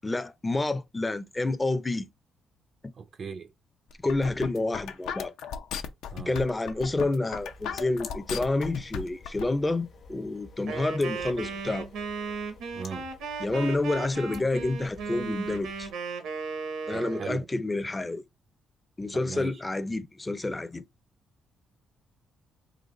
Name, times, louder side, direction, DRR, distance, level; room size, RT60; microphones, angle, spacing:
voice 1, 0.0-2.1 2.8-2.9 4.0-5.3 6.3-11.9 13.4-15.9 16.9-18.2 19.0-20.8, left 2 dB, 20° left, 0.4 m, -29 dB
voice 2, 3.0-3.5 6.1-6.4 12.7-13.1 16.9-17.5 19.1-19.6, right 6 dB, 50° right, 0.3 m, -38 dB
sound 1, 3.9-9.5, left 7 dB, 85° left, 0.5 m, -36 dB
sound 2, 7.3-15.9, left 3 dB, 60° left, 0.9 m, -51 dB
Wind instrument woodwind instrument, 10.7-17.3, right 5 dB, 90° right, 0.8 m, -36 dB
3.9 x 2.5 x 2.9 m
cardioid pair, 90°, 0 cm